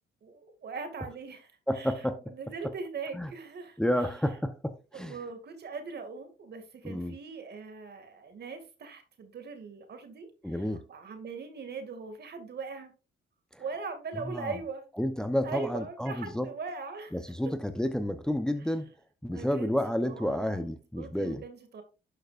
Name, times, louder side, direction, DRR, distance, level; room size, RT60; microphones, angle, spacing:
voice 1, 0.2-1.9 2.3-4.1 4.9-12.9 13.6-14.9 15.4-17.2 19.3-20.7 21.0-21.8, right 4 dB, 55° right, 2.3 m, -41 dB
voice 2, 1.7-2.3 2.6-2.7 3.1-3.3 3.8-5.2 6.8-7.2 10.4-10.8 13.5-13.6 14.2-14.6 15.0-16.5 17.1-18.9 19.2-21.4, equal, 5° left, 0.8 m, -30 dB
11.5 x 6.6 x 2.5 m
cardioid pair, 90°, 20 cm